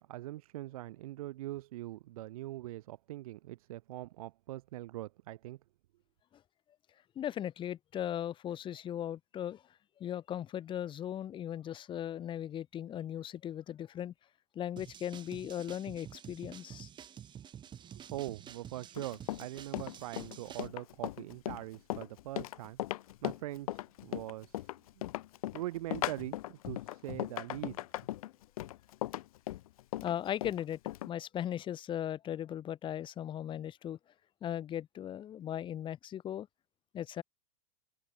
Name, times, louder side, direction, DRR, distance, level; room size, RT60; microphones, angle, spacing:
voice 1, 0.0-5.6 18.1-22.8 23.2-25.1 25.5-27.8, right 16 dB, 70° right, 2.5 m, -42 dB
voice 2, 7.1-9.6 10.0-14.1 14.5-16.9 30.0-30.8 31.1-34.0 34.4-36.5 36.9-37.2, left 10 dB, 25° left, 2.8 m, -38 dB
sound 1, 14.8-20.7, right 9 dB, 25° right, 4.0 m, -50 dB
Run, 18.9-31.1, left 15 dB, 70° left, 3.6 m, -38 dB
supercardioid pair, 140°, 19 cm